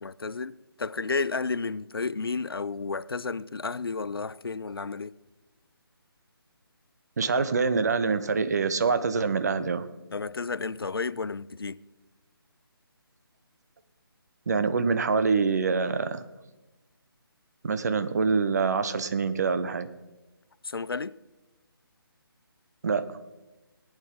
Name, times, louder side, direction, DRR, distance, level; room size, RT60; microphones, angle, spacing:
voice 1, 0.0-5.2 10.1-11.8 20.6-21.2, left 4 dB, 70° left, 0.4 m, -32 dB
voice 2, 7.2-9.9 14.5-16.2 17.6-19.9 22.8-23.0, right 5 dB, 45° right, 0.8 m, -25 dB
19.0 x 8.9 x 4.0 m
figure-of-eight pair, 150°, 13 cm